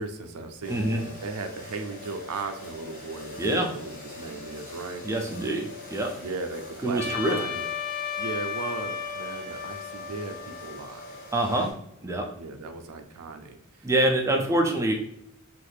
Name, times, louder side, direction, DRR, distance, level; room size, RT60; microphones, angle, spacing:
voice 1, 0.0-5.1 6.2-7.6 8.2-11.2 12.3-14.6, right 3 dB, 75° right, 6 dB, 0.4 m, -37 dB
sound 1, 0.6-11.7, left 1 dB, 40° left, 0.9 m, -43 dB
voice 2, 0.7-1.0 3.4-3.7 5.0-6.1 6.8-7.4 11.3-11.7 12.0-12.2 13.8-14.9, right 1 dB, 15° right, 2 dB, 0.3 m, -25 dB
Trumpet, 7.0-11.4, left 7 dB, 75° left, 0.5 m, -34 dB
3.1 x 2.4 x 3.2 m, 0.75 s
head